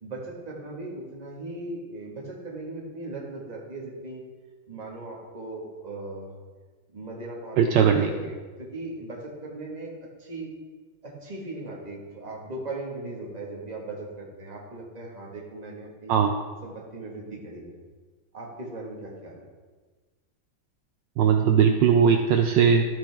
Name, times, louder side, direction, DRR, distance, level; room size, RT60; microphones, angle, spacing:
voice 1, 0.0-4.2 4.7-6.3 6.9-10.5 11.0-16.1 16.6-17.7 18.3-19.5, right 2 dB, 20° right, -3 dB, 1.4 m, -38 dB
voice 2, 7.6-8.1 16.1-16.3 21.2-22.9, right 7 dB, 75° right, 5 dB, 1.2 m, -19 dB
12.5 x 6.1 x 3.4 m, 1.4 s
omnidirectional pair, 2.2 m